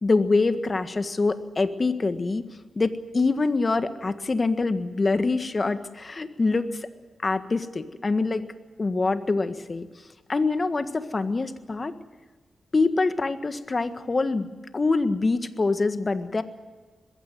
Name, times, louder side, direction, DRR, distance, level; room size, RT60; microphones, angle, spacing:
voice 1, 0.0-2.4 2.7-6.9 7.2-8.4 8.8-9.9 10.3-11.9 12.7-14.5 14.7-16.4, left 3 dB, 40° left, 10 dB, 1.6 m, -25 dB
21.0 x 16.0 x 9.5 m, 1.3 s
cardioid pair, 60°, 0 cm